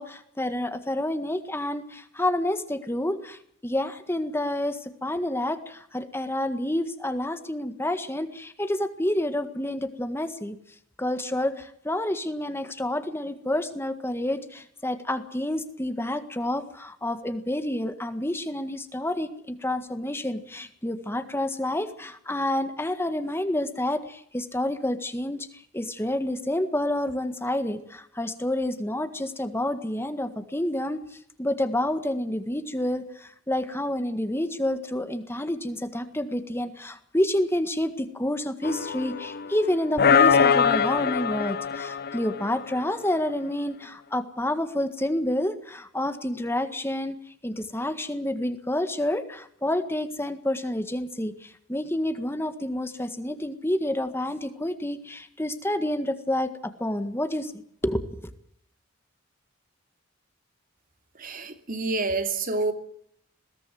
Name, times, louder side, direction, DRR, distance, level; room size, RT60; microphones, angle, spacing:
voice 1, 0.0-10.6 11.0-31.0 31.4-47.1 47.4-58.3, left 1 dB, 10° left, 1.7 m, -29 dB
sound 1, 38.6-39.6 40.0-42.7, left 6 dB, 50° left, 0.9 m, -22 dB
voice 2, 61.2-62.7, right 3 dB, 40° right, 2.8 m, -28 dB
21.5 x 17.5 x 7.8 m
head